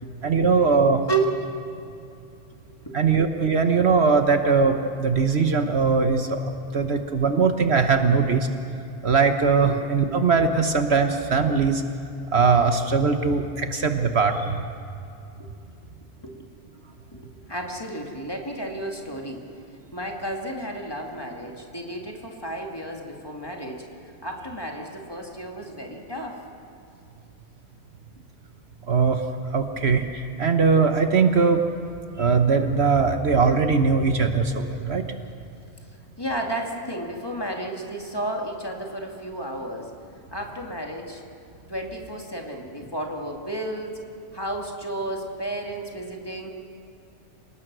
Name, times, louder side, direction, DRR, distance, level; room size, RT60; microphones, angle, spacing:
voice 1, 0.2-1.0 2.9-8.5 9.0-11.8 12.3-14.6 28.9-29.2 29.5-31.6 32.2-35.0, right 5 dB, 60° right, 6 dB, 1.3 m, -20 dB
voice 2, 17.1-19.5 19.9-23.8 24.2-26.4 36.2-39.9 40.3-41.2 41.7-44.0 44.3-46.5, right 1 dB, 20° left, 1 dB, 2.3 m, -32 dB
27.5 x 18.5 x 6.2 m, 2.6 s
omnidirectional pair, 1.3 m